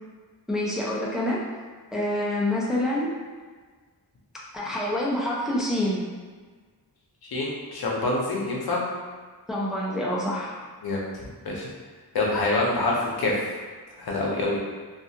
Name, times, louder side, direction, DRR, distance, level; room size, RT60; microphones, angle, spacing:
voice 1, 0.5-1.4 1.9-3.1 4.5-6.1 9.5-10.6, left 1 dB, ahead, -5 dB, 0.3 m, -26 dB
voice 2, 7.3-8.8 10.8-11.0 11.4-11.7 12.1-13.4 14.0-14.6, left 2 dB, 65° left, -3 dB, 0.7 m, -26 dB
2.4 x 2.3 x 2.7 m, 1.5 s
wide cardioid pair, 140°, 40 cm